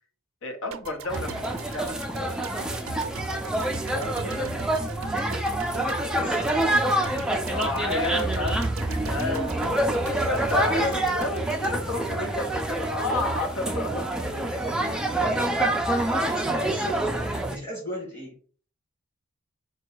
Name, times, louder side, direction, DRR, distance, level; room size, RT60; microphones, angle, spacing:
voice 1, 0.4-2.0 5.0-5.2 7.5-9.4 10.3-14.1 16.5-16.8, left 2 dB, 65° left, 3 dB, 0.9 m, -31 dB
sound 1, 0.7-12.9, right 5 dB, 70° right, 0.4 m, -41 dB
sound 2, 1.1-17.6, right 1 dB, 5° right, 0.3 m, -27 dB
voice 2, 3.8-4.6 6.1-6.6 9.2-11.1 13.7-15.5 16.3-17.2 17.5-18.4, equal, 10° left, -3 dB, 1.5 m, -37 dB
4.3 x 2.3 x 4.6 m, 0.43 s
head